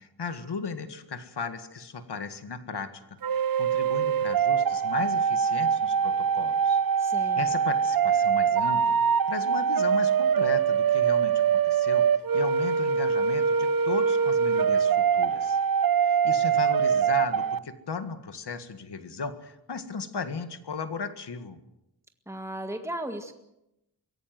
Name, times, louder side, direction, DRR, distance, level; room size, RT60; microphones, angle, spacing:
voice 1, 0.0-3.0 3.3-6.8 7.2-8.9 9.3-12.1 12.3-15.6 16.0-21.6, left 5 dB, 65° left, 9 dB, 1.9 m, -36 dB
sound 1, 3.2-17.6, right 7 dB, 50° right, 0.7 m, -24 dB
voice 2, 7.0-7.4 22.3-23.3, right 1 dB, 5° right, 5 dB, 1.8 m, -35 dB
24.0 x 17.0 x 7.7 m, 0.86 s
wide cardioid pair, 155°, 43 cm